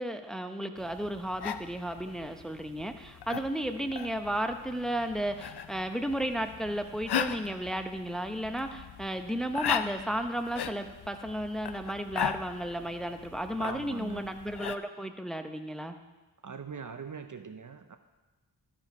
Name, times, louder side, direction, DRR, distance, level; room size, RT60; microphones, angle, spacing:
voice 1, 0.0-15.9, right 1 dB, ahead, 6 dB, 0.8 m, -34 dB
sound 1, 0.8-14.8, left 8 dB, 65° left, 0.6 m, -38 dB
voice 2, 13.6-14.3 16.4-18.0, right 6 dB, 45° right, 8 dB, 0.7 m, -41 dB
13.5 x 5.2 x 5.4 m, 1.2 s
cardioid pair, 45°, 42 cm